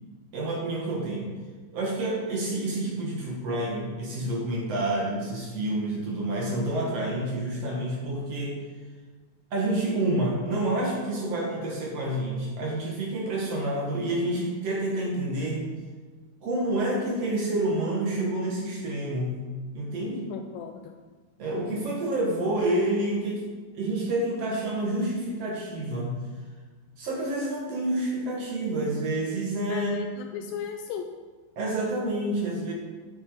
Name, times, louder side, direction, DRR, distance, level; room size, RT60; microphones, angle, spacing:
voice 1, 0.3-1.3 1.7-8.6 9.5-15.6 16.4-19.4 19.7-20.3 21.4-23.4 23.7-26.2 27.0-29.9 31.6-32.7, right 1 dB, 55° right, -2 dB, 2.0 m, -28 dB
voice 2, 20.3-21.0 29.7-31.1, left 7 dB, 85° left, 4 dB, 2.3 m, -36 dB
9.4 x 7.4 x 4.5 m, 1.4 s
omnidirectional pair, 4.1 m